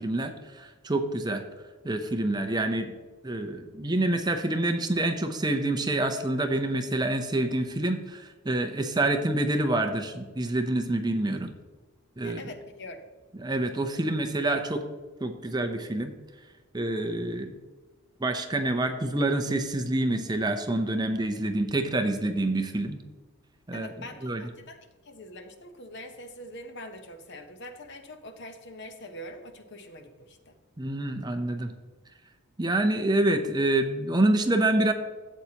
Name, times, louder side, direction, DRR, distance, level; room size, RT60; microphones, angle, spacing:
voice 1, 0.0-1.4 1.8-2.9 3.2-11.5 12.2-12.4 13.4-14.8 15.2-16.1 16.7-17.6 18.2-23.0 23.7-23.9 24.2-24.5 30.8-31.7 32.6-34.9, right 2 dB, 20° right, 6 dB, 0.6 m, -27 dB
voice 2, 12.2-13.0 23.7-30.5, left 1 dB, 50° left, 7 dB, 0.9 m, -44 dB
12.5 x 8.1 x 2.9 m, 1.3 s
head